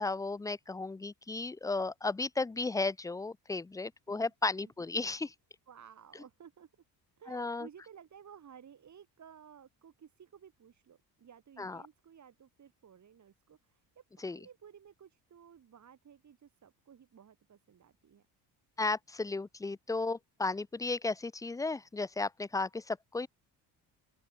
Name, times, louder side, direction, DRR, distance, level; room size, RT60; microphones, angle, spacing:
voice 1, 0.0-5.3 7.3-7.7 11.6-11.8 14.2-14.4 18.8-23.3, left 3 dB, 10° left, 0.3 m, -34 dB
voice 2, 5.7-6.7 7.2-18.3, right 8 dB, 45° right, 7.9 m, -56 dB
open air
cardioid pair, 115°, 39 cm